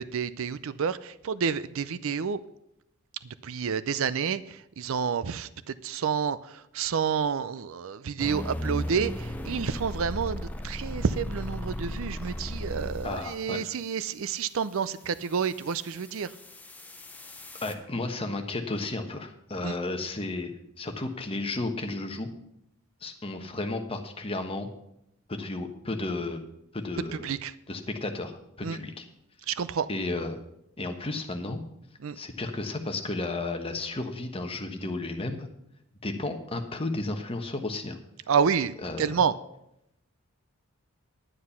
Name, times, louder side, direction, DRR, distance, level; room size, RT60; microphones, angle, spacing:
voice 1, 0.0-2.4 3.4-16.3 19.6-19.7 27.2-27.5 28.6-28.8 29.5-29.9 32.0-32.2 38.3-39.3, right 6 dB, 60° right, 16 dB, 0.4 m, -29 dB
sound 1, 8.2-13.4 15.1-17.7, equal, 5° left, 0.7 m, -36 dB
voice 2, 13.0-13.6 17.6-20.5 20.8-22.3 23.0-24.7 25.3-26.4 26.7-27.3 27.7-29.0 29.9-30.4 30.8-31.6 32.1-35.5 36.0-38.0 38.8-39.3, left 2 dB, 25° left, 5 dB, 1.1 m, -33 dB
10.0 x 9.6 x 5.7 m, 0.81 s
head